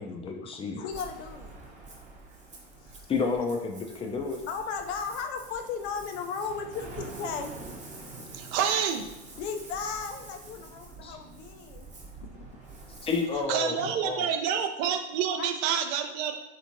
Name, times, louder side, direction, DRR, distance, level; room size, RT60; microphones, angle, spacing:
voice 1, 0.0-0.9 3.1-4.4 11.0-11.2 13.0-13.7 14.0-14.3, left 4 dB, 15° left, 3 dB, 0.4 m, -30 dB
voice 2, 0.8-1.5 2.8-3.1 4.5-7.5 9.4-11.9 13.8-13.9 15.4-15.5, left 5 dB, 65° left, 5 dB, 0.5 m, -35 dB
Ocean, 0.9-13.4, right 3 dB, 20° right, 0.8 m, -46 dB
voice 3, 8.3-9.1 13.5-16.4, right 8 dB, 50° right, 6 dB, 0.5 m, -28 dB
3.3 x 3.0 x 2.6 m, 0.94 s
hypercardioid pair, 100°, 35 cm